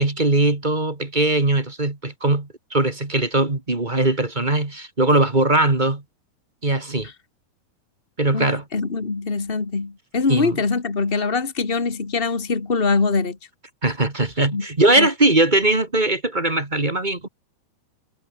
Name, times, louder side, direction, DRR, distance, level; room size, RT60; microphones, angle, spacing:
voice 1, 0.0-6.0 6.6-7.1 8.2-8.6 10.3-10.6 13.8-17.3, right 2 dB, 15° right, 1.6 m, -20 dB
voice 2, 8.3-13.4 14.5-14.6 15.0-15.1, left 4 dB, 80° left, 0.5 m, -23 dB
omnidirectional pair, 4.8 m